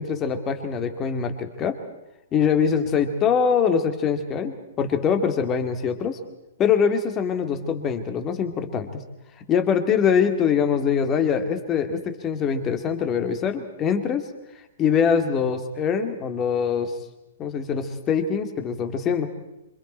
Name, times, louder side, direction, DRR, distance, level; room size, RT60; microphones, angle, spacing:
voice 1, 0.0-1.8 2.3-6.2 6.6-9.0 9.5-14.2 14.8-17.0 17.4-19.3, left 7 dB, 20° left, 7 dB, 2.3 m, -23 dB
27.0 x 25.5 x 4.4 m, 0.96 s
figure-of-eight pair, 115°, 0 cm